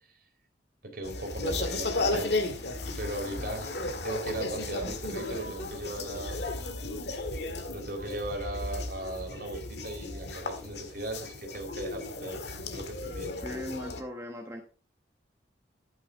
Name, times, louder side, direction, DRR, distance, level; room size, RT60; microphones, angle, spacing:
voice 1, 0.8-2.3 2.9-3.8 4.0-6.4 7.7-12.4 12.7-13.3, right 1 dB, 55° right, 3 dB, 3.7 m, -37 dB
sound 1, 1.0-14.0, left 2 dB, 65° left, 1.8 m, -34 dB
voice 2, 13.4-14.6, equal, 15° right, 2 dB, 1.1 m, -38 dB
11.5 x 9.4 x 3.5 m, 0.38 s
head